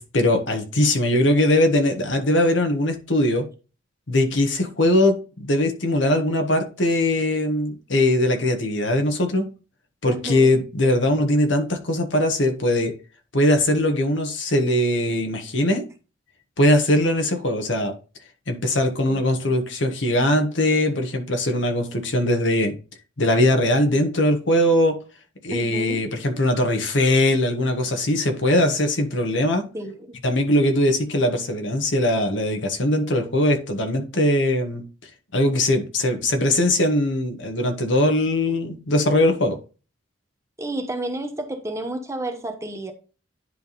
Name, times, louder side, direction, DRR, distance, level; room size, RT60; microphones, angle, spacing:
voice 1, 0.0-3.5 4.1-9.5 10.0-12.9 13.3-15.8 16.6-18.0 18.5-22.8 23.2-25.0 25.4-29.7 30.2-34.8 35.3-39.6, left 1 dB, 75° left, 1.5 m, -21 dB
voice 2, 10.0-10.5 19.1-19.2 25.5-26.0 29.7-30.2 40.6-42.9, right 1 dB, 15° right, 1.0 m, -31 dB
10.0 x 3.5 x 4.1 m
head